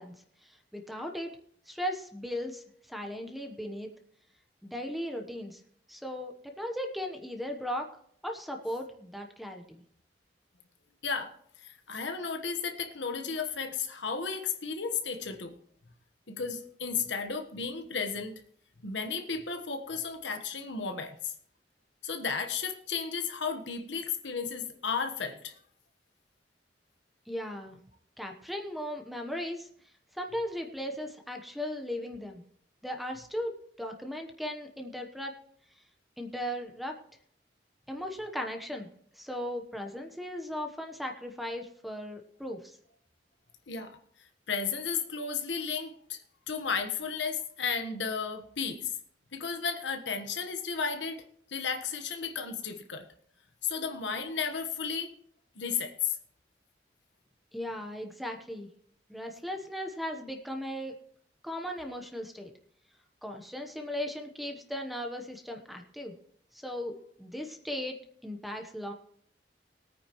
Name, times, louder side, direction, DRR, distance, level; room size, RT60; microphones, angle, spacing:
voice 1, 0.0-1.4 1.7-3.9 4.6-5.6 5.9-7.9 8.2-9.8 27.3-27.8 28.2-32.4 32.8-35.3 36.2-37.0 37.9-38.9 39.1-42.8 57.5-58.7 59.1-60.9 61.4-62.5 63.2-66.1 66.5-68.0 68.2-68.9, equal, ahead, 4 dB, 1.0 m, -37 dB
voice 2, 11.0-11.3 11.6-15.6 16.3-18.4 18.8-21.3 22.0-25.5 43.7-44.0 44.5-46.2 46.5-48.9 49.3-51.2 51.5-53.1 53.6-55.1 55.5-56.2, left 5 dB, 85° left, 6 dB, 1.2 m, -33 dB
20.0 x 9.1 x 3.0 m, 0.66 s
head